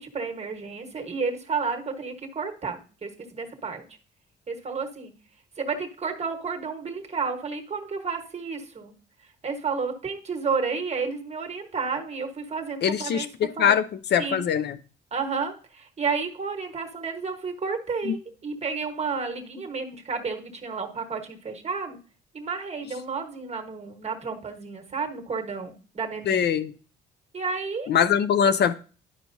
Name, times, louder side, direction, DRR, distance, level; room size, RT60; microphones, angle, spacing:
voice 1, 0.0-3.8 4.5-5.1 5.6-8.9 9.4-13.8 14.2-14.5 15.1-22.0 22.3-26.4 27.3-27.9, right 5 dB, 35° right, 4 dB, 1.2 m, -31 dB
voice 2, 12.8-13.8 14.1-14.8 18.1-18.2 26.3-26.7 27.9-28.7, left 8 dB, 60° left, 12 dB, 0.5 m, -22 dB
11.0 x 4.6 x 2.6 m, 0.38 s
cardioid pair, 90°, 20 cm